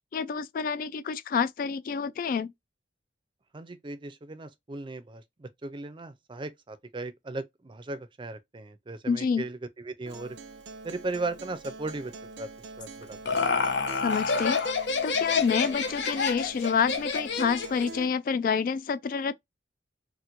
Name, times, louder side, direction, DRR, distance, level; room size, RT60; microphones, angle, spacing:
voice 1, 0.1-2.5 9.1-9.5 14.0-14.6 15.0-19.3, left 6 dB, 50° left, 0.3 m, -28 dB
voice 2, 3.5-10.4 10.8-13.4, right 2 dB, 30° right, 0.5 m, -37 dB
Acoustic guitar, 10.1-18.1, right 3 dB, 75° right, 0.6 m, -44 dB
Laughter, 12.8-18.0, left 5 dB, 80° left, 0.8 m, -28 dB
4.3 x 2.2 x 2.5 m
head